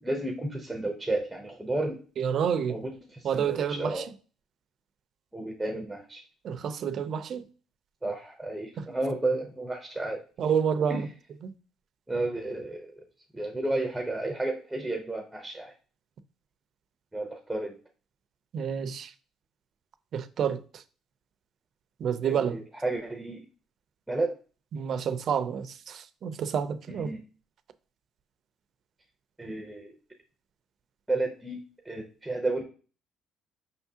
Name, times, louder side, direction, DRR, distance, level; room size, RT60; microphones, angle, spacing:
voice 1, 0.0-2.0 2.7-4.1 5.3-6.2 8.0-10.2 10.9-11.1 12.1-12.9 13.3-15.7 17.1-17.7 22.2-23.5 24.1-24.4 26.9-27.2 29.4-29.9 31.1-32.6, right 2 dB, 5° right, 0.6 m, -32 dB
voice 2, 2.2-2.8 3.2-4.0 6.4-7.4 8.8-8.9 10.4-11.1 11.4-11.5 18.5-19.1 20.1-20.8 22.0-22.6 24.7-27.1, right 7 dB, 50° right, 0.4 m, -29 dB
5.4 x 3.5 x 2.7 m
cardioid pair, 135°, 0 cm